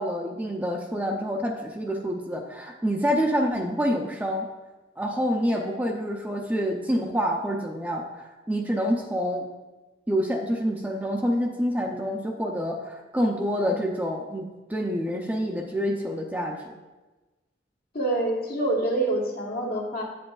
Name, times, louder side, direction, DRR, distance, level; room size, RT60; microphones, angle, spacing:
voice 1, 0.0-4.5 5.0-9.5 10.1-16.8, equal, 10° right, 1 dB, 0.5 m, -27 dB
voice 2, 17.9-20.0, right 2 dB, 55° left, -1 dB, 1.4 m, -26 dB
8.8 x 7.5 x 2.4 m, 1.2 s
head